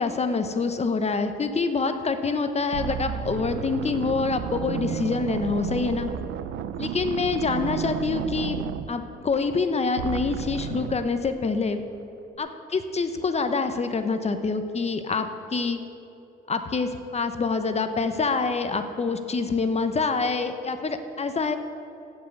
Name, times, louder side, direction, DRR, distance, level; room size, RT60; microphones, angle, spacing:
voice 1, 0.0-6.1 6.8-8.6 8.9-11.8 12.4-15.8 16.5-21.6, left 4 dB, 30° left, 8 dB, 0.9 m, -26 dB
sound 1, 2.1-2.3 2.7-9.6 10.0-11.1, right 9 dB, 80° right, 0.6 m, -32 dB
15.0 x 5.6 x 8.1 m, 2.8 s
cardioid pair, 90°, 20 cm